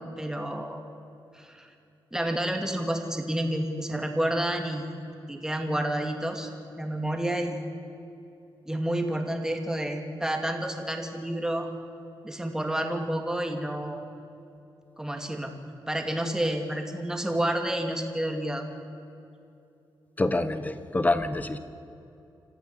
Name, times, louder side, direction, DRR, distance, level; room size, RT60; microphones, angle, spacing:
voice 1, 0.2-0.8 1.3-1.7 2.1-4.9 5.3-6.5 6.8-7.6 8.7-11.7 12.2-14.0 15.0-15.5 15.9-18.7, right 1 dB, 5° right, 4 dB, 2.5 m, -29 dB
voice 2, 20.2-21.6, left 2 dB, 20° left, 12 dB, 1.2 m, -26 dB
26.5 x 14.5 x 8.0 m, 2.7 s
wide cardioid pair, 125°, 8 cm